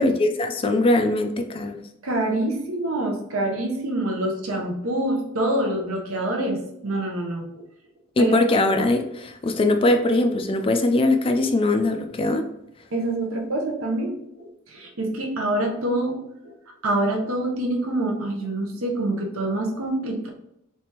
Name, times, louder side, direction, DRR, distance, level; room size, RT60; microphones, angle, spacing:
voice 1, 0.0-1.8 8.2-12.4, left 2 dB, 25° left, 6 dB, 0.3 m, -21 dB
voice 2, 2.0-7.5 8.2-8.4 12.9-16.2 16.4-16.5 16.8-20.3, right 1 dB, 70° right, 1 dB, 0.8 m, -26 dB
3.4 x 3.3 x 2.9 m, 0.79 s
head